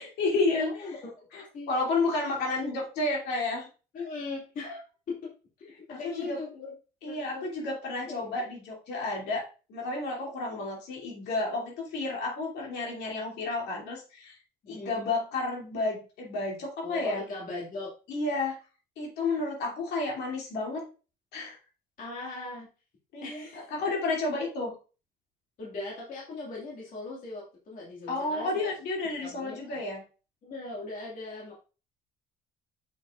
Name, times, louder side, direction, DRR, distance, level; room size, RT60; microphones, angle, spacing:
voice 1, 0.0-0.7 1.3-3.7 5.9-6.4 7.0-14.3 14.7-17.2 18.1-18.6 19.0-20.9 21.3-21.6 23.1-24.7 28.1-30.0, left 3 dB, 75° left, -2 dB, 2.7 m, -31 dB
voice 2, 0.6-1.3 1.5-1.7 3.9-5.3 5.6-6.8 7.1-7.5 8.1-8.3 14.6-15.0 16.8-17.9 22.0-22.7 23.2-23.7 25.6-28.7 29.2-29.8 30.4-31.6, left 3 dB, 55° left, -4 dB, 2.1 m, -39 dB
6.8 x 5.5 x 2.5 m, 0.34 s
cardioid pair, 110°, 17 cm